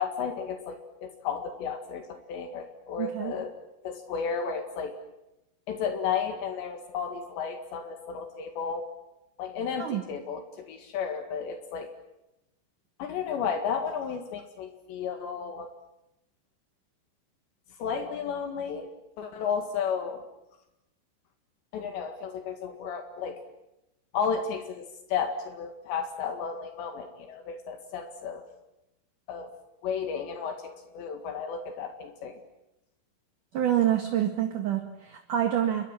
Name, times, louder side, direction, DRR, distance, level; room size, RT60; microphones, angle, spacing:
voice 1, 0.0-3.5 3.8-5.0 5.7-8.9 9.4-11.9 13.0-15.7 17.8-18.9 19.2-20.2 21.7-23.4 24.1-28.4 29.3-29.5 29.8-32.4, left 6 dB, 75° left, 6 dB, 4.1 m, -33 dB
voice 2, 3.0-3.3 9.8-10.0 33.5-35.9, right 11 dB, 55° right, 4 dB, 3.1 m, -27 dB
29.5 x 24.5 x 7.6 m, 0.89 s
omnidirectional pair, 5.2 m